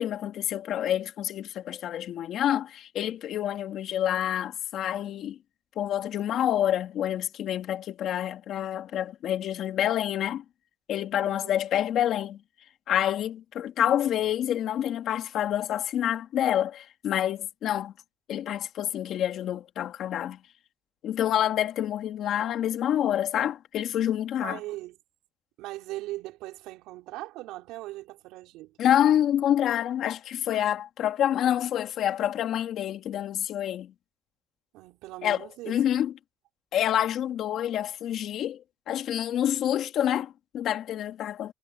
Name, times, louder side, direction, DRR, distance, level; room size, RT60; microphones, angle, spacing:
voice 1, 0.0-5.4 5.8-10.4 10.9-12.4 12.9-17.9 18.3-20.4 21.0-24.6 28.8-33.9 35.2-35.4 35.7-36.1 36.7-38.6 38.9-41.5, left 11 dB, 55° left, 2.5 m, -27 dB
voice 2, 11.2-11.6 24.4-25.0 25.6-28.8 34.7-35.8, right 17 dB, 80° right, 5.1 m, -39 dB
cardioid pair, 125°, 0 cm